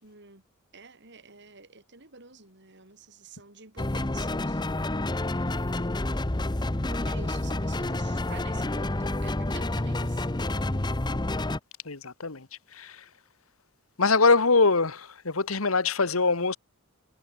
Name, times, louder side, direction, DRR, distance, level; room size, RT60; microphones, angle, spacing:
voice 1, 0.0-0.4 0.7-4.8 6.9-11.1, right 4 dB, 55° right, 6.3 m, -49 dB
sound 1, 3.8-11.6, left 2 dB, 20° left, 0.9 m, -29 dB
voice 2, 11.9-12.5 12.7-13.0 14.0-16.6, left 4 dB, 85° left, 1.8 m, -23 dB
head